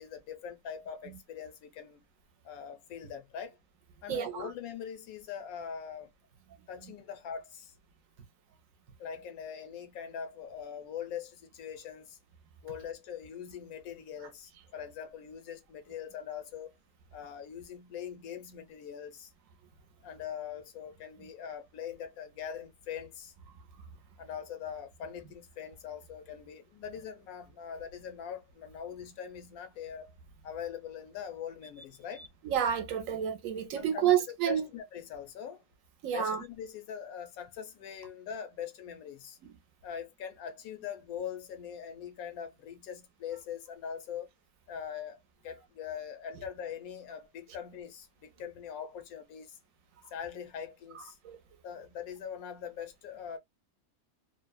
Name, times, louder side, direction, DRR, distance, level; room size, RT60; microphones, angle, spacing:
voice 1, 0.0-2.0 2.4-3.6 4.0-6.1 6.7-7.7 9.0-12.2 12.6-16.8 17.1-19.3 20.0-23.3 24.2-30.1 30.4-32.2 33.8-34.1 34.5-35.6 36.1-39.4 39.8-44.3 44.7-49.6 50.1-51.2 51.6-53.4, left 8 dB, 85° left, 1.1 m, -42 dB
voice 2, 4.1-4.5 32.4-34.6 36.0-36.4 39.4-39.5 51.2-51.4, right 9 dB, 75° right, 1.0 m, -29 dB
2.7 x 2.0 x 2.2 m
omnidirectional pair, 1.5 m